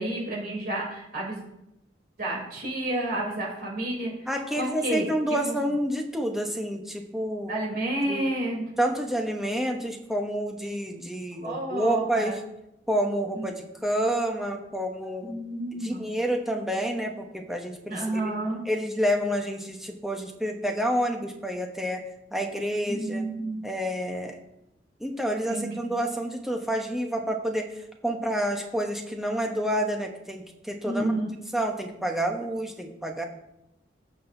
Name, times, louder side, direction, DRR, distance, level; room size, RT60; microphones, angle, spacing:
voice 1, 0.0-1.4 2.2-4.3 4.6-5.1 5.5-5.6 7.5-8.6 11.4-12.3 13.3-13.4 15.2-16.1 17.9-18.6 22.9-23.6 25.5-26.0 30.8-31.3, right 1 dB, 55° right, -3 dB, 3.4 m, -30 dB
voice 2, 4.3-7.5 8.1-8.3 8.8-12.4 12.9-13.6 13.8-15.3 15.8-18.0 18.7-22.0 22.3-23.2 23.6-24.4 25.0-27.7 28.0-31.1 31.5-33.2, equal, ahead, 2 dB, 1.0 m, -28 dB
17.0 x 6.2 x 2.7 m, 0.85 s
head